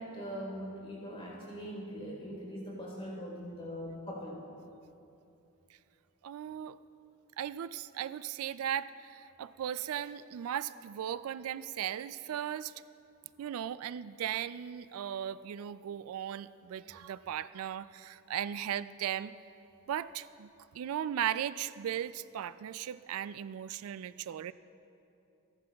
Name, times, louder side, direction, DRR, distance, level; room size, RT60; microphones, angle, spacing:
voice 1, 0.0-4.4, equal, 25° left, -3 dB, 3.8 m, -41 dB
voice 2, 6.2-6.8 7.4-12.7 13.4-19.4 19.9-20.5 20.7-24.5, right 10 dB, 75° right, 15 dB, 0.3 m, -37 dB
28.5 x 11.5 x 2.3 m, 2.7 s
head